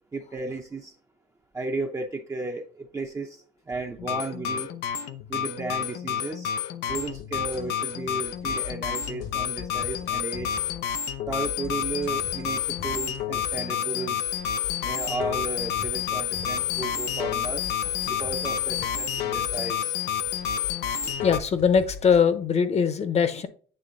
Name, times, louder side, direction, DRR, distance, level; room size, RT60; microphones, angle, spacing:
voice 1, 0.1-0.9 1.5-4.7 5.3-6.5 6.9-10.6 11.3-14.3 14.8-17.7 18.1-20.0, right 3 dB, 20° right, 2 dB, 0.7 m, -34 dB
sound 1, 4.0-21.4, left 9 dB, 85° left, 0.6 m, -29 dB
sound 2, 6.9-22.2, left 6 dB, 65° left, 1.5 m, -43 dB
voice 2, 20.9-23.5, left 6 dB, 40° left, 11 dB, 1.0 m, -22 dB
9.0 x 3.3 x 3.8 m, 0.43 s
cardioid pair, 110°, 17 cm